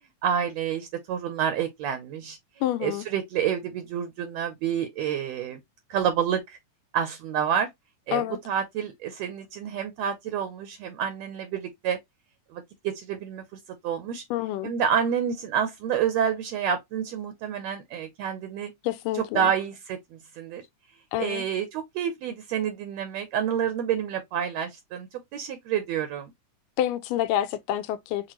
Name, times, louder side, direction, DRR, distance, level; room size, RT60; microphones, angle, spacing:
voice 1, 0.2-2.4 2.8-5.6 5.9-6.6 6.9-7.7 8.1-12.0 12.5-14.2 14.6-18.7 19.1-20.6 21.2-26.3, right 8 dB, 75° right, 1.6 m, -28 dB
voice 2, 2.6-3.1 8.1-8.4 14.3-14.7 18.8-19.5 21.1-21.4 26.8-28.3, left 12 dB, 90° left, 2.2 m, -28 dB
5.9 x 2.5 x 2.8 m
omnidirectional pair, 3.7 m